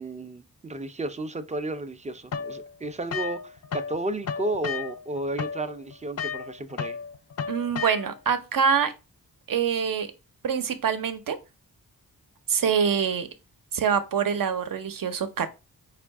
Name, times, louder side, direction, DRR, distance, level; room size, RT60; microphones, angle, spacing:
voice 1, 0.0-7.0, right 2 dB, 20° right, 0.4 m, -33 dB
sound 1, 2.3-4.0 4.2-8.3, left 6 dB, 45° left, 0.5 m, -33 dB
voice 2, 7.5-8.9 9.5-10.1 10.4-11.4 12.5-13.3 13.7-15.6, right 7 dB, 60° right, 0.7 m, -25 dB
4.6 x 2.4 x 3.3 m
cardioid pair, 75°, 37 cm